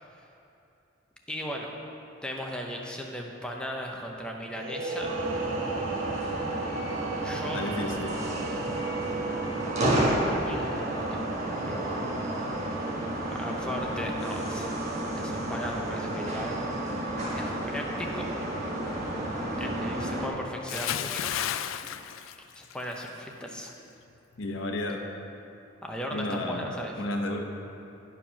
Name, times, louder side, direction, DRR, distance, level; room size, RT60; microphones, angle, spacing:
voice 1, 1.3-1.7 2.2-5.1 7.2-7.6 10.2-11.3 11.6-12.0 13.1-14.7 15.2-16.6 17.3-18.3 19.6-21.3 22.6-23.7 25.8-27.0, equal, 5° left, 0 dB, 0.7 m, -37 dB
sound 1, 4.5-14.0, right 3 dB, 75° right, 0.8 m, -37 dB
sound 2, 5.0-20.3, right 1 dB, 35° right, 1.3 m, -31 dB
voice 2, 7.4-8.2 24.4-25.0 26.1-27.4, left 1 dB, 70° left, 2 dB, 0.9 m, -32 dB
Bathtub (filling or washing) / Splash splatter, 20.7-23.1 23.4-23.7, left 10 dB, 90° left, 0.3 m, -33 dB
11.0 x 4.8 x 5.7 m, 2.8 s
head